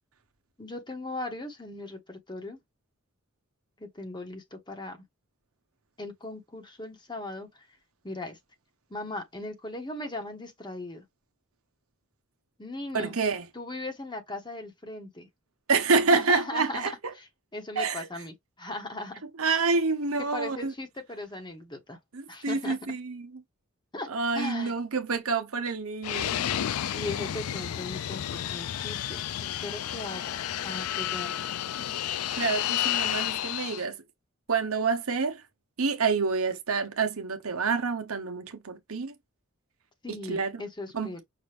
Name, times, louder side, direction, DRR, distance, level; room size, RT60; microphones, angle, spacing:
voice 1, 0.6-2.6 3.8-5.0 6.0-7.7 8.0-8.4 8.9-11.0 12.6-13.2 13.5-15.3 16.1-19.1 20.3-22.0 22.3-22.8 23.9-24.1 24.3-24.7 26.9-30.4 30.6-31.3 40.0-41.2, left 2 dB, 20° left, 1.2 m, -38 dB
voice 2, 12.9-13.5 15.7-16.9 17.8-18.1 19.4-20.7 22.1-23.3 24.1-26.4 32.4-34.0 34.5-35.4 35.8-39.1 40.1-40.6 40.9-41.1, right 4 dB, 80° right, 1.0 m, -27 dB
Fixed-wing aircraft airplane, 26.0-33.8, left 11 dB, 90° left, 0.4 m, -31 dB
5.8 x 2.5 x 3.3 m
head